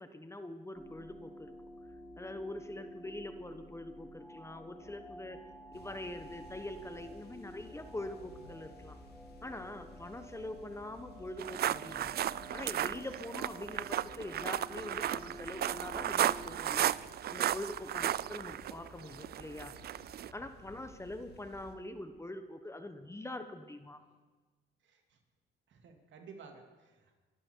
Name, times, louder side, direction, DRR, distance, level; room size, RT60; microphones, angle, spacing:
voice 1, 0.0-1.5 2.2-5.4 5.7-9.0 9.4-12.2 12.5-16.9 17.3-19.7 20.3-24.0, left 1 dB, 15° left, 9 dB, 1.2 m, -44 dB
sound 1, 0.7-16.6, equal, ahead, 2.1 m, -51 dB
sound 2, 5.7-21.7, left 3 dB, 55° left, 2.5 m, -57 dB
sound 3, 11.4-20.3, right 11 dB, 55° right, 0.4 m, -34 dB
voice 2, 24.8-25.2 25.7-27.2, right 5 dB, 70° right, 4 dB, 2.7 m, -54 dB
24.0 x 12.5 x 4.7 m, 1.3 s
cardioid pair, 90°, 20 cm